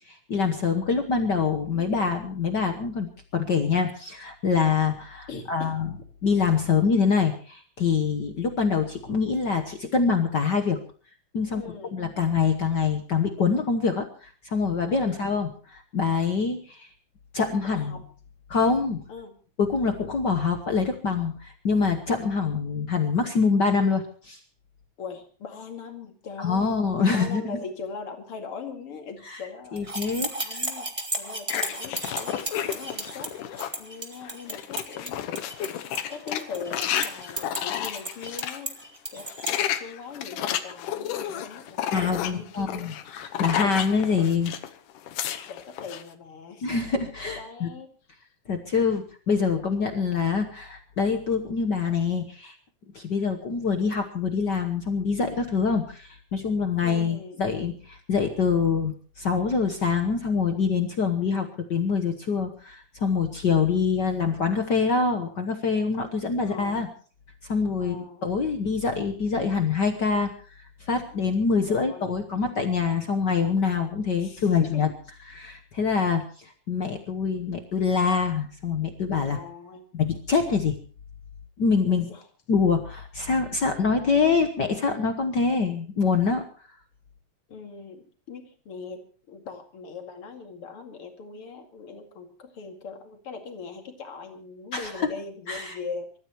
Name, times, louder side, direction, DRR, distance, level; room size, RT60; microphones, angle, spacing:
voice 1, 0.1-5.9 6.2-10.8 11.3-16.9 17.3-18.0 18.5-19.0 19.6-24.4 26.4-27.6 29.2-29.4 29.7-30.6 41.9-44.5 46.6-47.7 48.5-52.5 52.9-66.9 67.5-70.3 70.8-74.9 75.3-79.4 79.9-80.8 81.6-82.1 82.5-86.4 94.7-94.9 95.5-95.8, left 5 dB, 60° left, 5 dB, 1.1 m, -25 dB
voice 2, 1.7-2.1 5.3-5.8 6.3-6.4 11.5-11.9 14.9-15.3 17.6-18.0 19.1-19.4 25.0-26.8 27.1-30.1 30.4-30.9 31.2-32.4 32.6-35.7 36.1-38.8 39.1-42.9 43.4-43.7 45.5-46.7 47.3-48.2 56.8-57.4 66.4-66.9 67.8-68.2 71.7-72.1 74.2-74.9 79.3-79.9 81.6-82.2 87.5-96.1, left 5 dB, 45° left, 4 dB, 3.0 m, -41 dB
sound 1, 29.8-39.6, right 2 dB, 15° right, 1.4 m, -34 dB
sound 2, 31.5-33.8 34.2-38.6 39.2-44.7 45.0-46.0, left 10 dB, 80° left, 2.6 m, -32 dB
28.0 x 14.0 x 3.0 m, 0.41 s
omnidirectional pair, 3.6 m